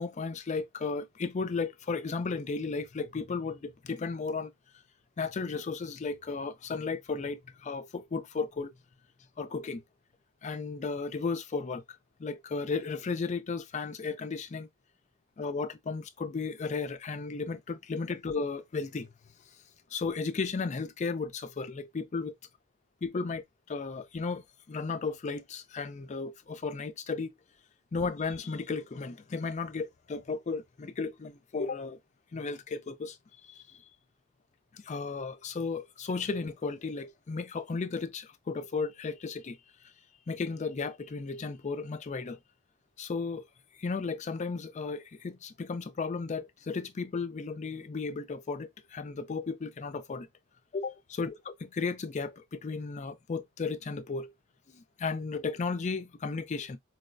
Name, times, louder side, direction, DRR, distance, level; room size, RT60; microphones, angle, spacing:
voice 1, 0.0-4.5 5.2-8.7 9.4-9.8 10.4-11.8 12.2-14.7 15.4-19.1 19.9-22.3 23.0-27.3 27.9-32.0 32.3-33.2 33.4-33.8 34.7-39.9 40.3-42.4 43.0-43.5 43.8-50.3 50.7-54.3 54.7-56.8, left 4 dB, 35° left, 0.4 m, -34 dB
4.6 x 2.1 x 2.4 m
head